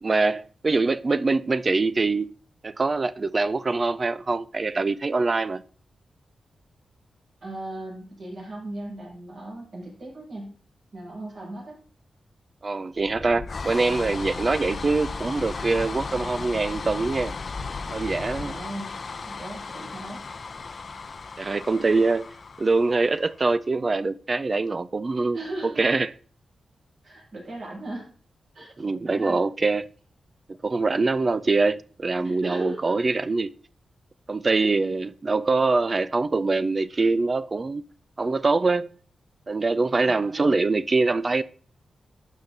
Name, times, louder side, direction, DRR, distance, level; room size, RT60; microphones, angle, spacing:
voice 1, 0.0-2.3 2.6-5.6 12.6-17.3 17.9-18.6 21.4-22.2 22.6-25.4 25.6-26.1 28.8-29.9 30.6-33.5 34.3-37.8 38.2-38.9 39.5-41.4, right 3 dB, 30° right, 0.3 m, -24 dB
voice 2, 7.4-10.6 10.9-11.8 18.4-19.0 19.3-20.3 21.8-21.9 25.3-26.0 27.0-28.1 28.5-29.4 32.2-33.1 34.5-34.7 40.1-40.7, right 1 dB, 55° right, 5.8 m, -38 dB
sound 1, 13.0-23.5, left 4 dB, 40° left, 0.6 m, -35 dB
12.0 x 7.3 x 3.9 m
wide cardioid pair, 155°, 0 cm